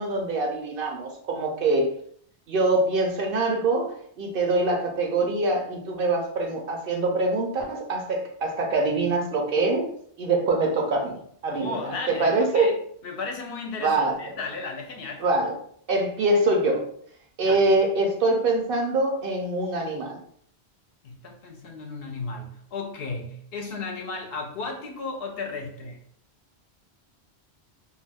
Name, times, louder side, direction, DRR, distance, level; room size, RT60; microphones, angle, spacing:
voice 1, 0.0-2.0 2.5-9.9 10.2-12.7 13.8-14.3 15.2-15.6 15.9-16.9 17.4-20.2, right 2 dB, 65° right, 0.7 m, -24 dB
voice 2, 11.5-12.8 13.0-15.2 17.4-17.6 21.0-26.0, left 3 dB, 65° left, 0.7 m, -34 dB
2.3 x 2.2 x 3.3 m
omnidirectional pair, 1.1 m